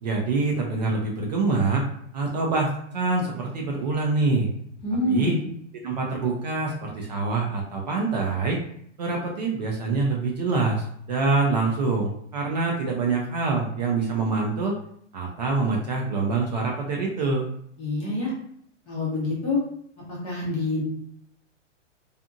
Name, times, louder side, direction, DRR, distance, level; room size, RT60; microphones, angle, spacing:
voice 1, 0.0-1.8 2.1-4.5 5.0-5.3 5.8-8.6 9.0-14.7 15.1-17.5, right 3 dB, 35° right, -1 dB, 0.4 m, -25 dB
voice 2, 4.8-5.5 17.8-18.3 18.9-19.6 20.1-20.8, left 2 dB, 15° left, -5 dB, 0.5 m, -26 dB
2.7 x 2.4 x 2.4 m, 0.68 s
hypercardioid pair, 155°, 36 cm